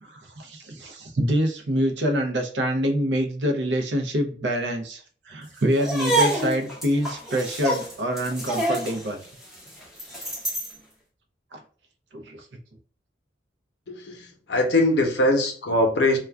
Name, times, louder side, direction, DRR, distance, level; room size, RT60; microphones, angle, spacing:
voice 1, 0.0-9.2 11.5-11.6 12.1-12.4, equal, 75° right, 5 dB, 0.6 m, -26 dB
sound 1, 5.7-10.8, right 2 dB, ahead, 0.7 m, -27 dB
voice 2, 13.9-16.2, left 1 dB, 70° left, 3 dB, 0.7 m, -22 dB
2.3 x 2.2 x 3.3 m, 0.43 s
head